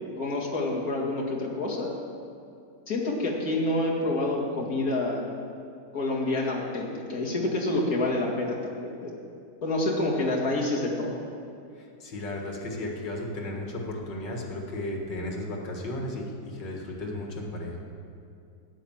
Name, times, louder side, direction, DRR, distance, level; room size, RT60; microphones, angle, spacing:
voice 1, 0.2-1.9 2.9-5.3 5.9-9.2 9.6-11.2, left 2 dB, 55° left, -3 dB, 2.6 m, -28 dB
voice 2, 11.8-17.8, left 1 dB, 85° left, 0 dB, 2.4 m, -34 dB
12.0 x 9.7 x 7.3 m, 2.5 s
omnidirectional pair, 1.9 m